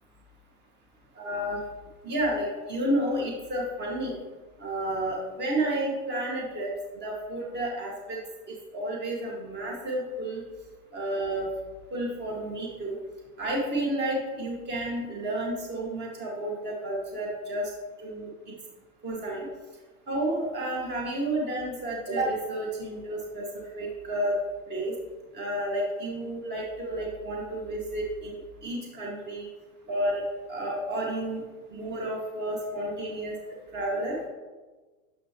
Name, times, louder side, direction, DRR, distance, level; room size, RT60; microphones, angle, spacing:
voice 1, 1.2-1.6 2.0-4.1 4.6-6.7 7.0-8.2 8.5-10.4 10.9-11.5 11.9-13.0 13.4-17.7 18.0-18.5 19.0-19.5 20.1-24.4 24.7-24.9 25.3-29.5 29.9-30.2 30.5-31.4 31.7-33.3 33.7-34.2, right 1 dB, 20° right, -3 dB, 2.0 m, -31 dB
10.0 x 7.6 x 3.0 m, 1.3 s
hypercardioid pair, 120°, 46 cm